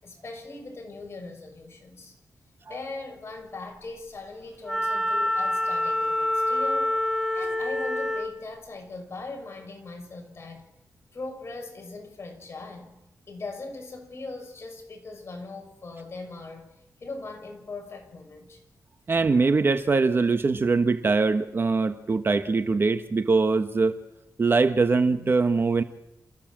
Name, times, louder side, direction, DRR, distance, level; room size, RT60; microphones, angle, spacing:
voice 1, 0.0-2.1 2.7-6.9 7.3-10.6 11.1-13.0 13.3-16.7 17.0-18.6, left 3 dB, 45° left, 3 dB, 6.3 m, -40 dB
Wind instrument woodwind instrument, 4.6-8.4, left 1 dB, ahead, 2.2 m, -26 dB
voice 2, 19.1-24.0 24.4-25.8, right 4 dB, 40° right, 9 dB, 1.2 m, -22 dB
29.0 x 15.0 x 7.5 m, 0.88 s
wide cardioid pair, 120°, 6 cm